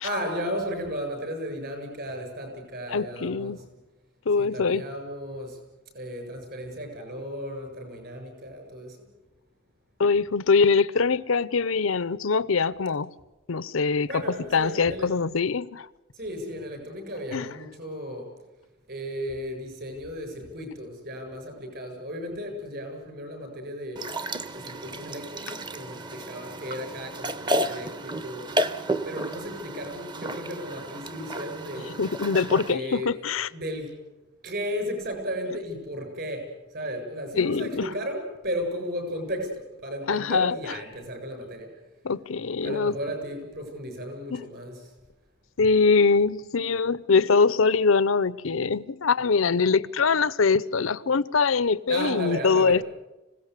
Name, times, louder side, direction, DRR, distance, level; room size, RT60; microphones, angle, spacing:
voice 1, 0.0-3.6 4.4-5.6 5.9-9.0 14.1-15.1 16.1-18.3 18.9-24.1 24.5-28.7 29.0-32.0 32.7-33.2 33.5-34.0 34.4-41.8 42.6-44.9 51.9-52.8, equal, 55° right, 7.6 m, -34 dB
voice 2, 2.9-3.6 4.3-4.8 10.0-13.1 13.5-15.9 17.3-17.5 32.0-33.5 37.4-37.8 40.1-40.5 42.0-42.9 44.3-44.4 45.6-52.8, left 4 dB, 90° left, 0.7 m, -23 dB
sound 1, 24.0-32.7, right 1 dB, 20° right, 0.8 m, -32 dB
26.0 x 17.5 x 8.3 m
head